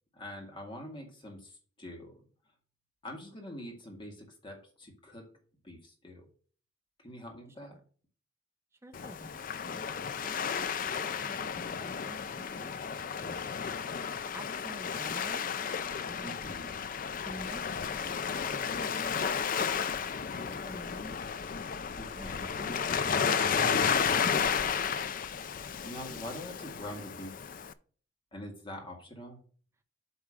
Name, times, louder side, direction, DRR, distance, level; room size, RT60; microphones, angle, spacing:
voice 1, 0.1-2.2 3.0-5.3 5.6-6.3 7.0-7.8 16.2-16.9 22.0-22.7 25.8-27.4 28.3-29.4, left 1 dB, 25° left, 1 dB, 2.1 m, -44 dB
voice 2, 8.8-9.3 9.6-9.8 10.2-12.8 13.2-13.4 14.3-15.5 16.0-16.5 17.2-19.3 19.6-21.3 22.2-23.5 23.8-24.9, right 1 dB, 15° right, 6 dB, 0.8 m, -49 dB
Waves surf, 8.9-27.7, left 6 dB, 45° left, 0.4 m, -33 dB
8.4 x 3.6 x 6.3 m, 0.42 s
head